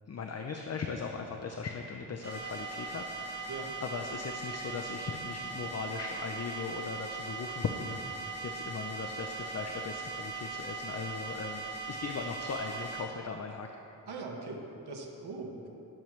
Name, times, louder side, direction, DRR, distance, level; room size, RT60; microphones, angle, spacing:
voice 1, 0.1-13.7, left 5 dB, 45° left, 3 dB, 0.6 m, -39 dB
sound 1, 2.2-13.0, right 4 dB, 45° right, 2.5 m, -39 dB
voice 2, 14.1-15.7, right 3 dB, 85° right, 1 dB, 1.4 m, -41 dB
17.5 x 7.4 x 3.2 m, 2.8 s
wide cardioid pair, 145°, 38 cm